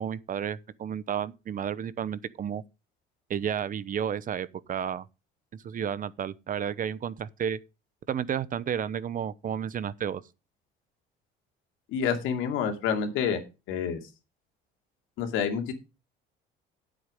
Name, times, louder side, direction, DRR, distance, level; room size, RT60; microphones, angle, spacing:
voice 1, 0.0-2.6 3.3-5.0 5.6-7.6 8.1-10.2, right 8 dB, 40° right, 0.8 m, -32 dB
voice 2, 11.9-13.4 13.7-14.0 15.2-15.7, left 7 dB, 75° left, 2.6 m, -28 dB
9.4 x 8.0 x 5.2 m
supercardioid pair, 95°, 20 cm